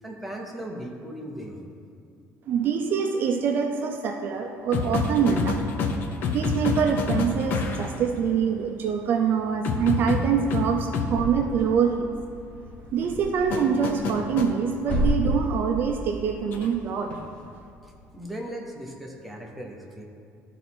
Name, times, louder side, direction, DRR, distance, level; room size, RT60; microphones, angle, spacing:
voice 1, 0.0-1.6 17.8-20.0, right 1 dB, ahead, -1 dB, 0.7 m, -38 dB
voice 2, 2.5-5.6 6.3-12.2 12.9-17.1, right 6 dB, 40° right, 3 dB, 0.4 m, -25 dB
sound 1, 4.7-8.0 9.6-11.1 13.5-14.5 16.5-16.7, left 4 dB, 40° left, 0.6 m, -27 dB
sound 2, 8.2-18.1, equal, 25° left, 1.1 m, -35 dB
12.0 x 4.1 x 4.4 m, 2.5 s
cardioid pair, 180°, 5 cm